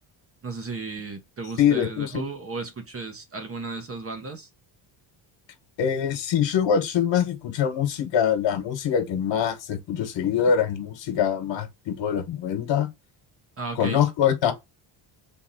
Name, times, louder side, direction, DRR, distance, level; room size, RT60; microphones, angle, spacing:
voice 1, 0.4-4.5 13.6-14.0, right 3 dB, 30° right, 0.9 m, -34 dB
voice 2, 1.6-2.2 5.8-12.9 13.7-14.5, left 8 dB, 65° left, 1.3 m, -24 dB
3.6 x 2.9 x 4.0 m
cardioid pair, 135°, 48 cm